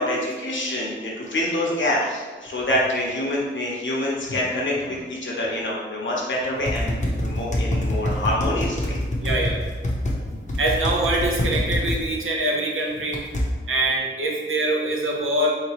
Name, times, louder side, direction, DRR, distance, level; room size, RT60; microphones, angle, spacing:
voice 1, 0.0-9.0, left 1 dB, 65° left, -4 dB, 1.0 m, -26 dB
sound 1, 6.6-10.2 10.5-12.0 13.1-13.4, left 1 dB, 35° left, 0.8 m, -24 dB
voice 2, 9.2-9.6 10.6-13.2 13.7-15.5, right 2 dB, 80° right, -2 dB, 0.8 m, -24 dB
3.8 x 2.9 x 3.0 m, 1.3 s
wide cardioid pair, 90°, 21 cm